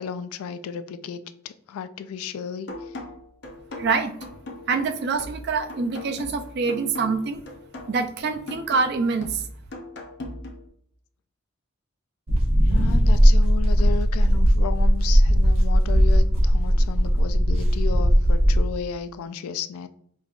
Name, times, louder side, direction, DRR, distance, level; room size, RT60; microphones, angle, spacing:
voice 1, 0.0-2.9 12.6-19.9, left 7 dB, 90° left, 12 dB, 0.3 m, -34 dB
sound 1, 2.7-10.7, left 1 dB, 55° left, 0.6 m, -39 dB
voice 2, 3.8-4.1 4.7-7.4 7.9-9.4, right 4 dB, 50° right, 8 dB, 0.4 m, -25 dB
sound 2, 12.3-18.7, equal, 80° right, 1.0 m, -18 dB
5.2 x 2.3 x 2.4 m, 0.67 s
head